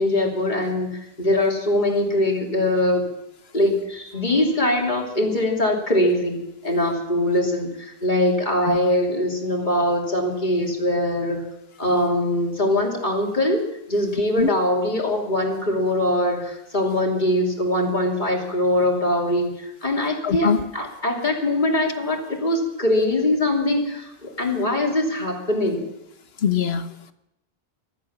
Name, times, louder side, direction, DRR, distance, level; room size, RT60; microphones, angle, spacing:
voice 1, 0.0-3.1 3.5-6.4 6.6-11.4 11.8-13.6 13.9-25.8, left 1 dB, 45° left, 0 dB, 3.1 m, -22 dB
voice 2, 20.2-20.6 26.4-27.1, left 6 dB, 75° left, 10 dB, 1.3 m, -22 dB
15.0 x 13.0 x 7.3 m, 0.86 s
omnidirectional pair, 1.1 m